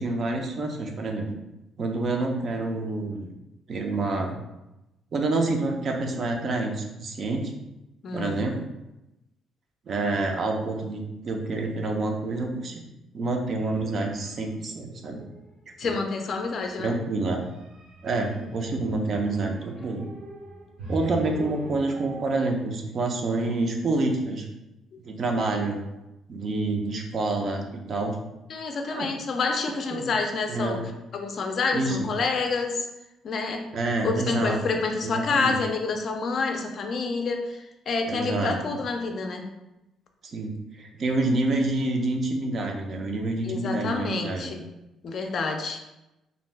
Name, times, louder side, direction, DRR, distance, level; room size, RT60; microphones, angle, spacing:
voice 1, 0.0-1.4 1.8-3.3 3.7-4.4 5.1-7.5 8.1-8.6 9.9-12.7 13.1-15.3 15.8-15.9 16.8-17.4 18.0-20.1 20.9-24.5 25.0-25.8 26.3-28.1 28.9-29.1 29.9-30.1 30.5-30.8 31.7-32.1 33.7-35.5 38.1-38.6 40.3-44.5, right 2 dB, 45° right, 3 dB, 0.4 m, -28 dB
sound 1, 13.6-14.6 14.9-15.5 16.2-22.2, equal, 75° right, 0.7 m, -42 dB
voice 2, 15.8-16.9 28.5-30.8 31.1-32.9 33.2-33.7 34.0-39.5 43.4-44.6 45.0-45.8, left 4 dB, 50° left, 4 dB, 0.4 m, -28 dB
2.5 x 2.1 x 3.2 m, 0.94 s
cardioid pair, 125°, 0 cm